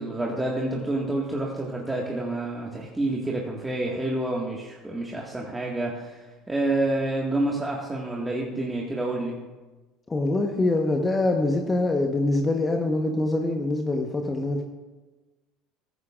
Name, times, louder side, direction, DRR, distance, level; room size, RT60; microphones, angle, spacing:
voice 1, 0.0-6.2 6.5-9.4, right 2 dB, 10° right, -3 dB, 1.9 m, -28 dB
voice 2, 10.1-14.6, left 2 dB, 20° left, 3 dB, 1.2 m, -24 dB
14.5 x 14.5 x 2.5 m, 1.2 s
hypercardioid pair, 75°, 0 cm